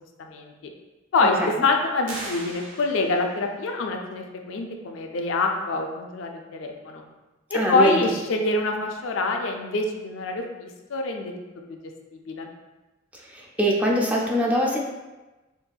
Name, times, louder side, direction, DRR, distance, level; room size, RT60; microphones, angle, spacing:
voice 1, 0.2-0.7 1.1-7.0 7.5-11.3 11.7-12.5, left 3 dB, 75° left, 3 dB, 0.4 m, -26 dB
sound 1, 2.0-3.4, right 2 dB, 70° right, 0.7 m, -38 dB
voice 2, 7.5-8.1 13.1-14.8, equal, 10° right, -3 dB, 0.3 m, -23 dB
4.0 x 2.6 x 2.3 m, 1.1 s
head